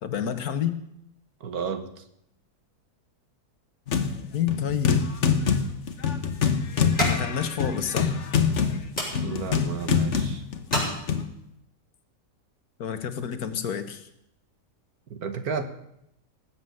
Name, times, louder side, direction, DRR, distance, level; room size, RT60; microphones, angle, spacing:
voice 1, 0.0-0.8 4.3-5.0 7.0-8.1 12.8-14.1, left 8 dB, 70° left, 10 dB, 1.6 m, -29 dB
voice 2, 1.4-2.0 9.2-10.4 15.1-15.6, right 6 dB, 65° right, 9 dB, 1.7 m, -32 dB
sound 1, 3.9-4.2 4.5-11.2, left 6 dB, 50° left, 1.4 m, -25 dB
sound 2, 5.3-11.6, equal, 5° left, 7.6 m, -36 dB
19.5 x 7.9 x 7.7 m, 0.78 s
omnidirectional pair, 1.7 m